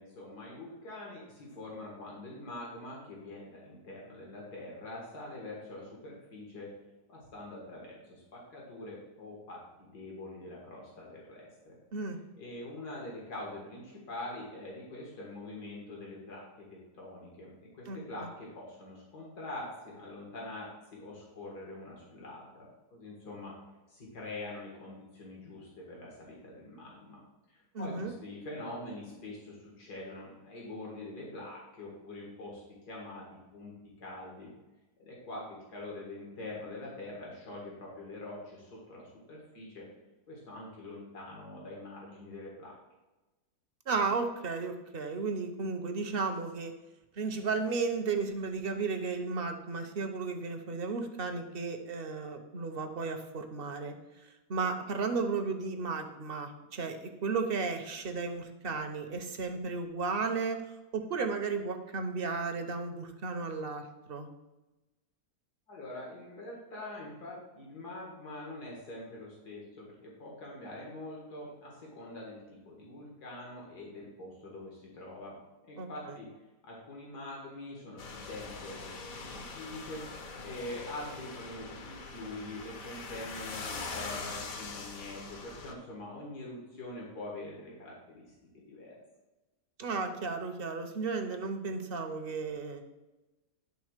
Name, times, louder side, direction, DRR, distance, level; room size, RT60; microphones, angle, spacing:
voice 1, 0.0-6.7 7.1-11.8 12.4-23.5 23.9-27.2 27.5-33.2 33.5-33.7 34.0-34.5 35.0-39.9 40.3-42.8 65.7-75.4 75.6-76.3 76.6-88.2 88.5-89.0, left 2 dB, 80° left, -3 dB, 2.5 m, -44 dB
voice 2, 17.9-18.3 27.7-28.1 43.9-46.7 47.2-53.9 54.5-60.6 60.9-64.3 75.8-76.2 89.8-92.8, right 4 dB, 45° right, 6 dB, 0.8 m, -34 dB
sound 1, 78.0-85.7, left 4 dB, 60° left, 1.4 m, -42 dB
10.5 x 3.8 x 6.5 m, 1.1 s
omnidirectional pair, 1.7 m